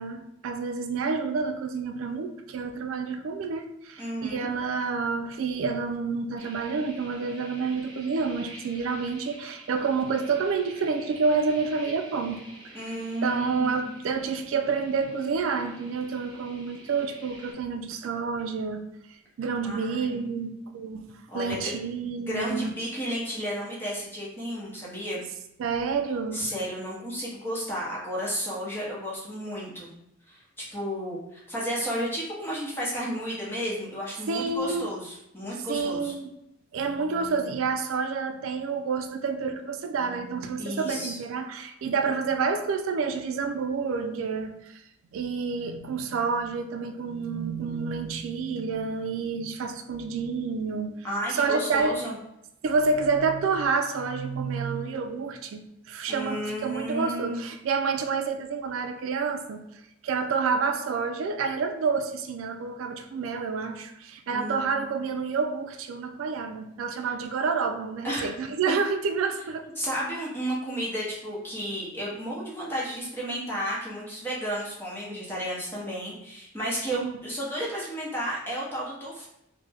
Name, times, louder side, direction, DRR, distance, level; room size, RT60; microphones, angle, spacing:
voice 1, 0.0-12.4 13.2-18.9 19.4-21.1 21.3-22.7 25.6-26.5 34.3-34.9 35.7-36.3 36.7-44.8 45.1-50.9 51.3-52.0 52.6-59.6 60.0-69.6 76.9-77.2, right 5 dB, 80° right, 6 dB, 0.3 m, -29 dB
voice 2, 4.0-4.5 12.7-13.9 19.6-20.3 21.3-21.7 22.2-25.2 26.3-29.9 30.3-30.4 30.7-36.1 40.6-41.2 51.0-52.2 56.1-57.4 64.3-65.1 68.0-68.3 69.8-79.3, equal, 10° left, -6 dB, 0.8 m, -33 dB
sound 1, 6.4-17.5, right 1 dB, 20° right, 0.6 m, -48 dB
3.2 x 2.1 x 3.3 m, 0.82 s
head